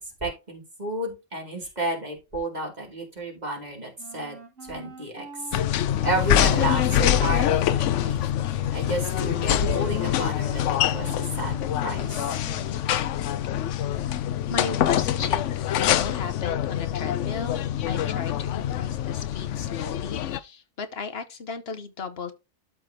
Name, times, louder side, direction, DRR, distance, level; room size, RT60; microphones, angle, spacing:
voice 1, 0.2-4.4 4.7-5.3 5.8-8.2 8.7-12.0, right 1 dB, 35° right, 2.9 m, -31 dB
Wind instrument woodwind instrument, 4.0-12.8, equal, 80° right, 2.3 m, -43 dB
sound 1, 5.5-20.4, left 11 dB, 75° left, 0.9 m, -25 dB
voice 2, 14.5-17.6 17.8-22.3, left 4 dB, 55° left, 1.2 m, -35 dB
13.0 x 4.7 x 2.8 m
omnidirectional pair, 1.3 m